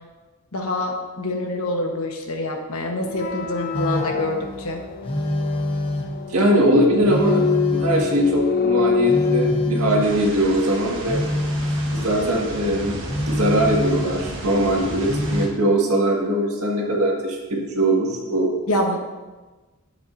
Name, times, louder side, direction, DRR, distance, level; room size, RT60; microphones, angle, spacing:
voice 1, 0.5-4.8 18.7-19.0, left 1 dB, 75° left, 2 dB, 1.2 m, -26 dB
sound 1, 3.0-10.0, left 6 dB, 40° left, 0.4 m, -25 dB
Telephone, 3.7-4.3 5.0-6.3 7.0-8.3 9.0-10.3 11.0-12.2 13.1-14.3 15.1-15.6, left 1 dB, 25° left, 0.9 m, -25 dB
voice 2, 6.3-7.4 7.7-11.2 11.9-13.0 13.3-18.5, right 1 dB, 80° right, -1 dB, 1.7 m, -21 dB
sound 2, 10.0-15.5, right 1 dB, 55° right, 1.4 m, -34 dB
10.5 x 7.6 x 2.6 m, 1.2 s
head